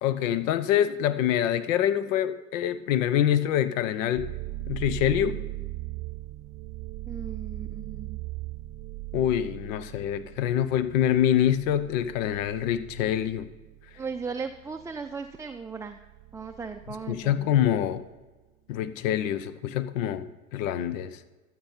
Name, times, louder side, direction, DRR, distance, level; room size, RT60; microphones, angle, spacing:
voice 1, 0.0-4.3 4.7-5.4 9.1-13.5 17.1-18.0 18.7-21.2, left 10 dB, 70° left, 14 dB, 0.9 m, -25 dB
sound 1, 4.2-18.0, right 18 dB, 40° right, 0.8 m, -39 dB
voice 2, 7.1-8.2 14.0-16.0 16.3-17.5, right 5 dB, 10° right, 5 dB, 0.5 m, -37 dB
13.0 x 7.8 x 5.6 m, 1.2 s
hypercardioid pair, 90°, 40 cm